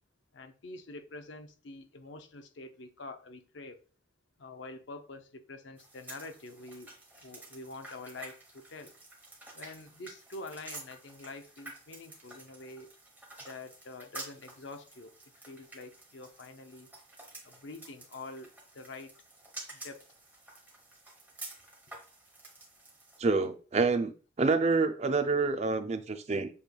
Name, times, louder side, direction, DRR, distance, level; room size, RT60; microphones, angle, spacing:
voice 1, 0.3-3.8 4.4-6.9 7.2-8.9 9.5-12.9 13.4-16.9 17.4-19.1 19.7-20.1, left 2 dB, 70° left, 0.6 m, -46 dB
sound 1, 5.8-23.2, right 2 dB, 10° right, 1.0 m, -50 dB
voice 2, 23.2-24.1 24.4-26.5, right 4 dB, 35° right, 0.4 m, -27 dB
7.0 x 3.1 x 2.3 m
head